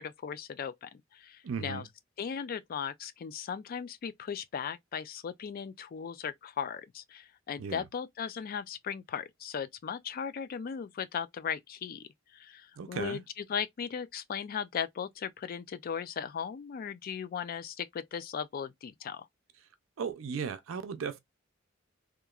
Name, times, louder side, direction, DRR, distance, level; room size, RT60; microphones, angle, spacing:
voice 1, 0.0-1.8 2.2-19.2, left 7 dB, 45° left, 0.3 m, -37 dB
voice 2, 1.4-1.9 7.6-7.8 12.8-13.2 20.0-21.2, right 6 dB, 75° right, 0.4 m, -36 dB
2.9 x 2.4 x 2.3 m
head